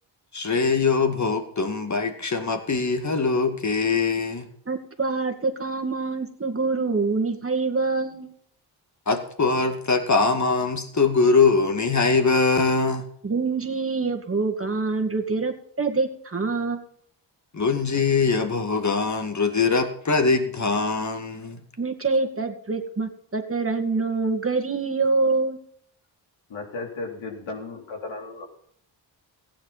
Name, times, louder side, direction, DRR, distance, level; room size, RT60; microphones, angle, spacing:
voice 1, 0.3-4.5 9.1-13.0 17.5-21.6, left 4 dB, 35° left, 6 dB, 2.3 m, -22 dB
voice 2, 4.7-8.3 13.2-16.8 21.8-25.6, right 3 dB, 25° right, 3 dB, 2.1 m, -25 dB
voice 3, 26.5-28.4, left 3 dB, 70° left, 1 dB, 3.7 m, -35 dB
15.0 x 10.0 x 4.2 m, 0.66 s
cardioid pair, 60°, 48 cm